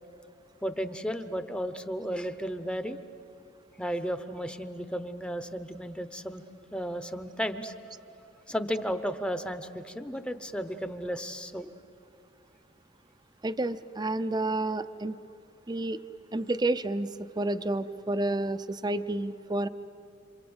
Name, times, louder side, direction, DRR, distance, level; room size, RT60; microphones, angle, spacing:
voice 1, 0.6-3.0 3.8-6.4 6.7-7.7 8.5-11.7, equal, 5° left, 10 dB, 0.8 m, -34 dB
voice 2, 13.4-15.2 15.7-16.0 16.3-17.1 17.4-19.7, right 2 dB, 20° right, 13 dB, 0.5 m, -30 dB
27.0 x 26.5 x 8.0 m, 2.8 s
head